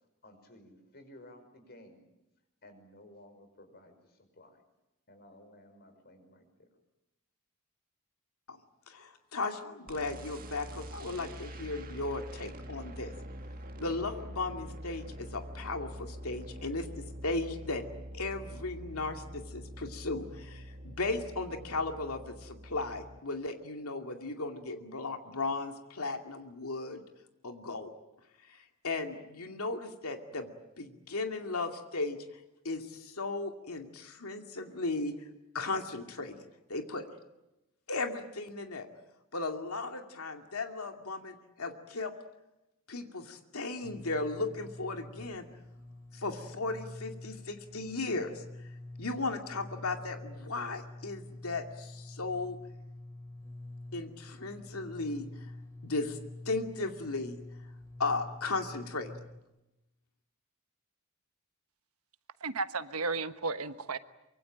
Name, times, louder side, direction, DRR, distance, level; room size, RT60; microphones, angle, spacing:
voice 1, 0.2-2.1 2.6-4.6 5.1-6.7, left 1 dB, 50° left, 8 dB, 5.4 m, -55 dB
voice 2, 8.9-13.1 13.8-17.8 18.1-27.0 27.4-27.9 28.5-30.5 30.8-32.2 32.6-35.2 35.5-36.4 36.7-37.0 37.9-38.9 39.3-42.1 42.9-45.4 46.1-48.4 49.0-52.6 53.9-55.5 55.8-56.2 56.5-57.4 58.0-59.1, left 3 dB, 80° left, 5 dB, 2.5 m, -36 dB
sound 1, 9.9-23.2, equal, 40° right, 1.8 m, -45 dB
sound 2, 43.8-59.4, left 1 dB, 15° left, 3.0 m, -47 dB
voice 3, 62.4-64.0, right 3 dB, 80° right, 11 dB, 1.3 m, -34 dB
25.0 x 23.5 x 8.9 m, 0.94 s
head